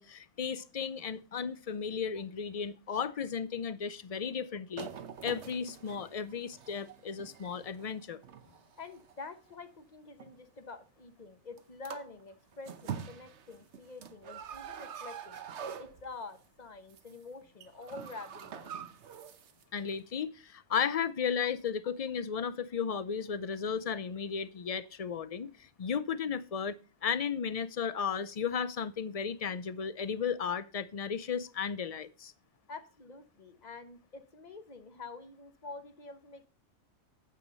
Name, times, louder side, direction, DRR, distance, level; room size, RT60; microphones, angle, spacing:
voice 1, 0.0-4.9 5.2-8.2 19.7-26.8 27.0-32.3, left 7 dB, 55° left, 0.4 m, -34 dB
sound 1, 4.8-9.6 10.2-10.4 11.6-11.7 11.8-12.2 12.5-16.4 16.7-17.2 17.4-19.6 19.9-20.0, right 8 dB, 60° right, 1.1 m, -45 dB
voice 2, 8.8-15.4 15.8-18.7 21.4-21.5 27.9-28.1 32.7-36.5, left 3 dB, 35° left, 1.1 m, -47 dB
9.2 x 8.1 x 4.0 m
omnidirectional pair, 1.4 m